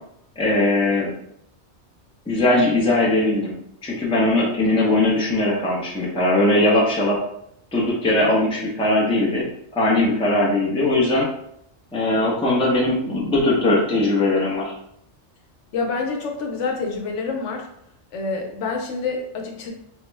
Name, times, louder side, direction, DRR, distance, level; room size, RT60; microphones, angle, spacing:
voice 1, 0.4-1.1 2.3-3.5 3.8-7.2 7.7-9.5 9.8-11.3 11.9-14.7, left 1 dB, 5° left, -4 dB, 0.4 m, -20 dB
voice 2, 15.7-17.7 18.1-19.7, left 4 dB, 80° left, 2 dB, 0.9 m, -27 dB
3.5 x 2.1 x 3.2 m, 0.74 s
omnidirectional pair, 1.2 m